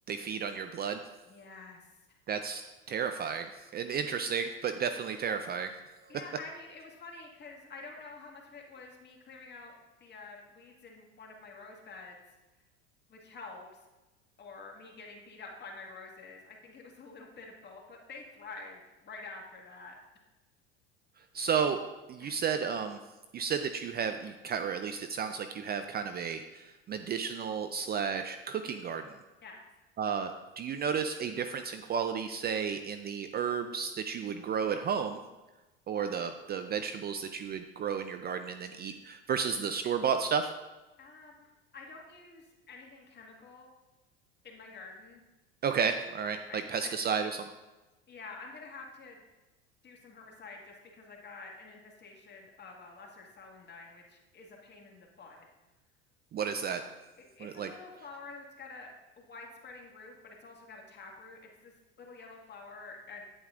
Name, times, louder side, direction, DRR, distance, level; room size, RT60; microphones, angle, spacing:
voice 1, 0.1-1.0 2.3-2.6 2.9-5.7 21.3-21.8 22.1-23.0 23.3-29.0 30.0-35.2 35.9-40.5 45.6-47.5 56.3-56.8 57.4-57.7, right 6 dB, 30° right, 8 dB, 0.5 m, -32 dB
voice 2, 1.3-1.9 6.1-9.7 10.0-12.2 13.1-13.8 14.4-20.0 22.2-22.3 29.4-29.6 41.0-43.7 44.4-45.2 46.3-46.9 48.1-49.2 49.8-55.5 57.2-58.9 59.2-63.2, left 3 dB, 30° left, 0 dB, 1.9 m, -48 dB
9.0 x 8.3 x 2.5 m, 1.1 s
hypercardioid pair, 85°, 32 cm